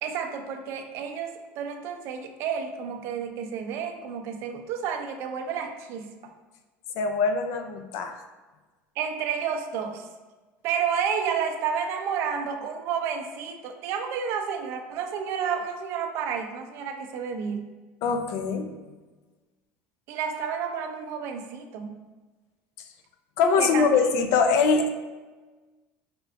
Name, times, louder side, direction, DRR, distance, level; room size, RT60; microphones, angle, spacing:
voice 1, 0.0-6.3 9.0-10.1 10.6-17.7 20.1-22.0 23.6-24.1, right 7 dB, 50° right, 5 dB, 0.5 m, -31 dB
voice 2, 7.0-8.2 18.0-18.8 23.4-24.9, left 5 dB, 60° left, 6 dB, 0.4 m, -23 dB
4.5 x 3.3 x 2.5 m, 1.3 s
cardioid pair, 150°, 5 cm